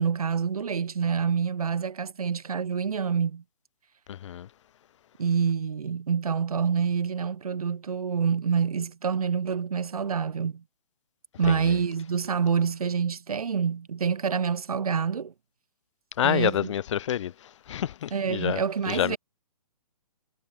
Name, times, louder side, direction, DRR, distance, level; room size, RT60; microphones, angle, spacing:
voice 1, 0.0-3.4 5.2-10.6 11.4-15.3 16.2-16.7 18.1-19.2, right 6 dB, 70° right, 1.8 m, -27 dB
voice 2, 4.1-4.5 11.5-11.6 16.2-17.3 17.7-19.2, left 11 dB, 50° left, 0.5 m, -28 dB
hypercardioid pair, 135°, 19 cm